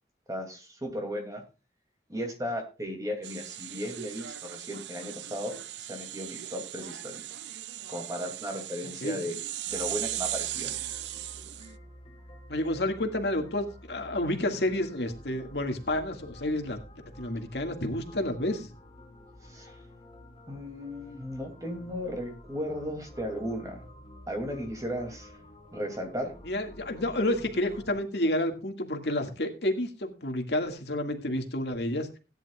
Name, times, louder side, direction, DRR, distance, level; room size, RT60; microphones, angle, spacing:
voice 1, 0.3-1.4 2.1-7.2 7.9-9.4 9.7-10.8 19.4-19.8 20.5-23.9 24.3-25.3 25.7-26.3, equal, 20° right, 4 dB, 2.6 m, -35 dB
sound 1, 3.2-11.8, right 13 dB, 85° right, 0.5 m, -38 dB
sound 2, 9.7-28.0, left 1 dB, 25° left, 3.4 m, -50 dB
voice 2, 12.5-18.7 26.5-32.1, left 1 dB, 75° left, 4 dB, 2.0 m, -30 dB
17.0 x 10.5 x 2.4 m, 0.31 s
head